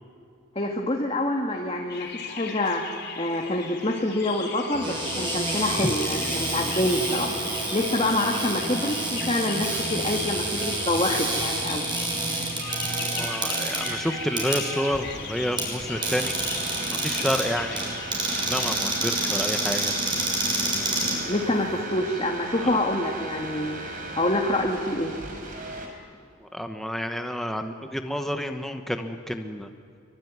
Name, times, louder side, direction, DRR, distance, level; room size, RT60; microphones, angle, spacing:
voice 1, 0.6-7.3 7.7-11.9 21.0-25.2, left 1 dB, 25° left, 1 dB, 2.0 m, -26 dB
sound 1, 1.9-18.7, left 6 dB, 50° left, 3.1 m, -38 dB
Cupboard open or close, 4.7-21.8, right 2 dB, 20° right, 6.6 m, -29 dB
sound 2, 12.6-25.9, right 2 dB, 40° right, 4.4 m, -37 dB
voice 2, 13.2-16.3 16.9-18.0 18.3-19.9 26.4-29.7, equal, ahead, 6 dB, 1.0 m, -29 dB
24.0 x 23.5 x 9.6 m, 2.4 s
head